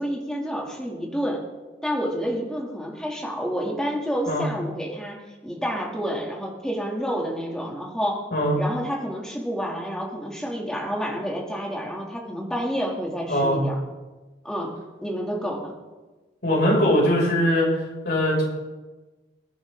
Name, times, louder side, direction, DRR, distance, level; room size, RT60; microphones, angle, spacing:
voice 1, 0.0-1.4 1.8-8.2 8.5-13.8 14.4-14.7 15.0-15.7, equal, 5° left, -2 dB, 2.5 m, -29 dB
voice 2, 16.4-17.7 18.0-18.5, equal, 65° left, -3 dB, 5.9 m, -21 dB
22.0 x 11.0 x 3.7 m, 1.2 s
head